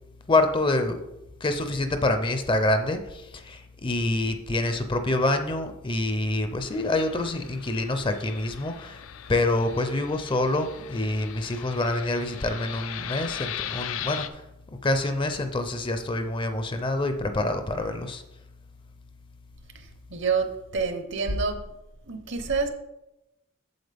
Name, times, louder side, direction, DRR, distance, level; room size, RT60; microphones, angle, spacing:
voice 1, 0.3-1.0 1.4-9.0 9.3-14.4 14.8-18.2, left 2 dB, 25° left, 8 dB, 0.5 m, -26 dB
Fixed-wing aircraft airplane, 6.6-14.3, left 10 dB, 70° left, 0.4 m, -39 dB
voice 2, 20.1-21.6 22.1-22.7, right 4 dB, 60° right, 7 dB, 0.9 m, -27 dB
7.9 x 7.1 x 3.5 m, 0.91 s
head